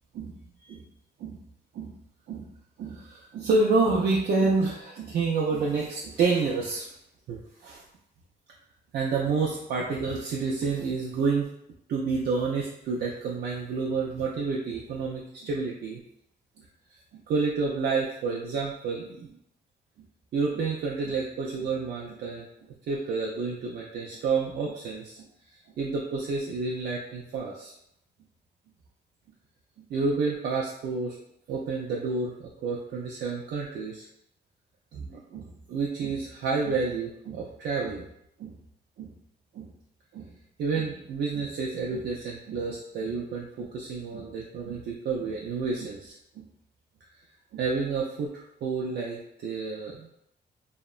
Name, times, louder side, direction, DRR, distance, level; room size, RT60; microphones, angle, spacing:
voice 1, 2.8-6.9 7.3-7.8 8.9-11.5 11.9-16.0 17.3-19.3 20.3-22.4 22.9-25.2 25.8-27.7 29.9-31.1 31.5-34.1 34.9-38.0 38.4-38.6 39.0-39.1 39.5-39.7 40.1-40.3 40.6-46.1 47.5-50.1, right 4 dB, 75° right, -3 dB, 0.4 m, -29 dB
2.8 x 2.1 x 2.3 m, 0.74 s
cardioid pair, 95°, 17 cm